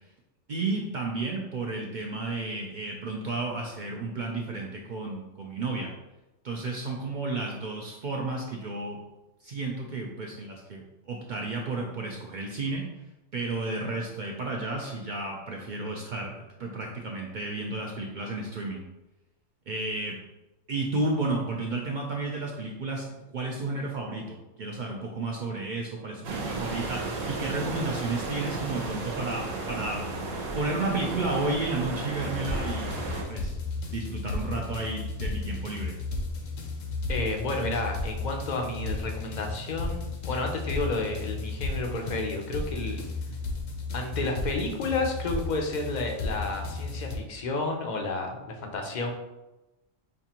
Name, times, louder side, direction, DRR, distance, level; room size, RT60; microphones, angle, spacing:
voice 1, 0.5-5.9 6.4-9.0 9.4-12.8 13.3-18.8 19.7-20.2 20.7-30.0 30.5-33.0 33.3-33.5 33.9-36.0, right 2 dB, 65° right, 0 dB, 0.4 m, -32 dB
sound 1, 26.2-33.2, right 3 dB, 85° right, 1.1 m, -33 dB
sound 2, 32.1-47.2, left 3 dB, 75° left, 1.0 m, -34 dB
voice 2, 37.1-43.0 43.9-49.1, left 2 dB, 50° left, 2 dB, 0.5 m, -31 dB
5.2 x 2.4 x 2.8 m, 0.99 s
omnidirectional pair, 1.4 m